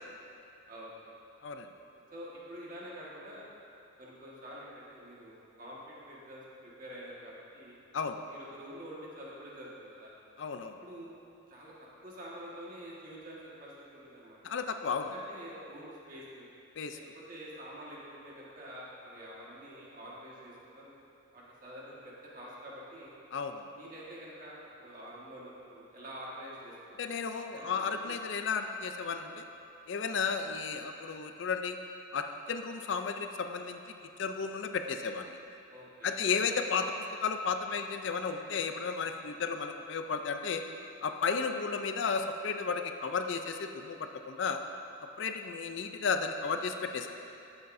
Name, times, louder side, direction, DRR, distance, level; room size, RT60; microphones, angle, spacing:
voice 1, 1.9-3.5 4.0-7.8 8.3-10.1 10.6-11.1 11.5-11.7 12.0-14.4 15.1-16.5 16.9-20.9 21.3-23.2 23.7-27.0 27.5-28.1 35.7-36.1, equal, 40° right, -6 dB, 1.6 m, -47 dB
voice 2, 10.4-10.7 14.4-15.1 16.8-17.0 23.3-23.7 27.0-29.4 29.9-31.8 32.1-33.8 34.2-35.4 36.0-36.9 37.2-40.6 41.0-44.6 45.2-47.1, left 5 dB, 65° left, 6 dB, 0.4 m, -33 dB
12.0 x 7.9 x 2.6 m, 2.7 s
head